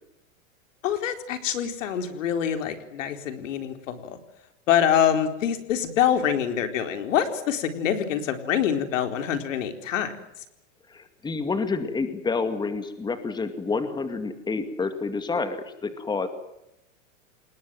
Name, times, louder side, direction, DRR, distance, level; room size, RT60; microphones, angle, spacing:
voice 1, 0.8-4.2 4.7-10.1, left 9 dB, 75° left, 8 dB, 4.3 m, -25 dB
voice 2, 10.9-16.3, left 4 dB, 10° left, 9 dB, 2.3 m, -29 dB
27.5 x 21.0 x 7.8 m, 0.84 s
supercardioid pair, 140°, 39 cm